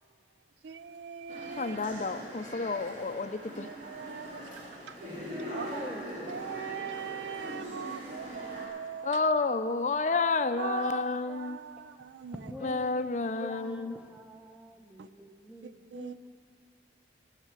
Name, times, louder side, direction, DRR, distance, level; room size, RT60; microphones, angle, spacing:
voice 1, 0.6-1.8 3.6-5.9 6.3-9.2 10.6-12.5 15.0-15.1 15.6-16.2, right 7 dB, 85° right, 0.4 m, -41 dB
sound 1, 1.3-8.7, equal, 45° right, 2.8 m, -42 dB
voice 2, 1.6-3.7 9.0-11.6 12.6-13.9, left 3 dB, 40° left, 0.5 m, -30 dB
voice 3, 5.7-6.1 11.8-12.9 13.4-16.4, equal, 5° right, 0.8 m, -45 dB
19.5 x 6.6 x 7.4 m
head